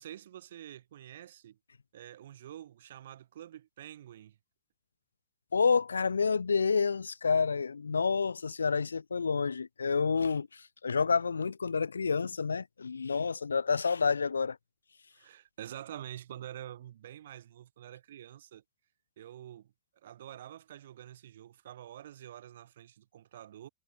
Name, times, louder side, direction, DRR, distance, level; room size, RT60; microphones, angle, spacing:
voice 1, 0.0-1.6 1.9-4.4 15.1-18.6 19.2-19.7 20.0-23.7, right 11 dB, 60° right, 1.7 m, -47 dB
voice 2, 5.5-14.6, left 5 dB, 75° left, 0.3 m, -29 dB
figure-of-eight pair, 90°, 0 cm